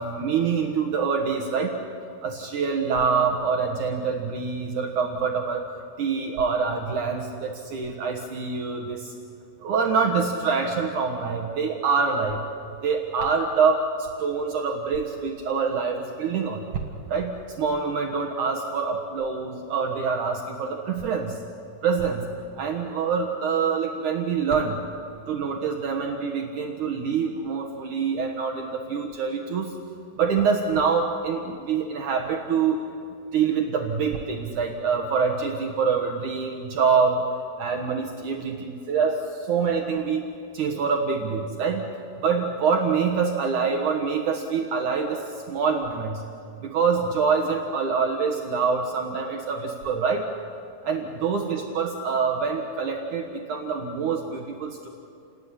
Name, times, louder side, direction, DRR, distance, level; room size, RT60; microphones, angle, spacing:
voice 1, 0.0-1.8 2.2-5.7 6.0-9.1 9.6-12.4 12.8-16.8 17.1-21.4 21.8-22.2 22.6-24.8 25.3-29.8 30.2-32.8 33.3-37.2 37.6-40.2 40.5-41.8 42.2-46.2 46.6-50.3 50.8-54.9, right 5 dB, 65° right, 3 dB, 2.7 m, -25 dB
29.5 x 20.0 x 9.9 m, 2.5 s
omnidirectional pair, 4.0 m